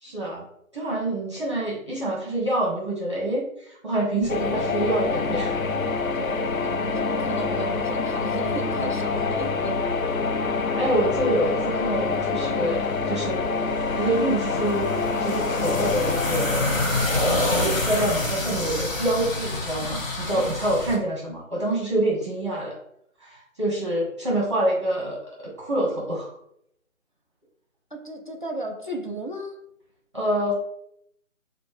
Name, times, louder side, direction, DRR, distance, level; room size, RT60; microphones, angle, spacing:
voice 1, 0.0-0.4 0.7-5.6 10.8-13.4 13.9-22.8 23.2-26.3 30.1-30.5, right 1 dB, 20° right, -4 dB, 0.7 m, -26 dB
sound 1, 4.2-21.0, left 2 dB, 70° left, 1.1 m, -30 dB
sound 2, 4.3-18.1, left 4 dB, 85° left, 0.6 m, -27 dB
voice 2, 6.1-9.8 20.3-20.5 27.9-29.6, right 2 dB, 40° left, 1 dB, 0.4 m, -34 dB
5.0 x 2.0 x 3.2 m, 0.73 s
figure-of-eight pair, 150°, 40 cm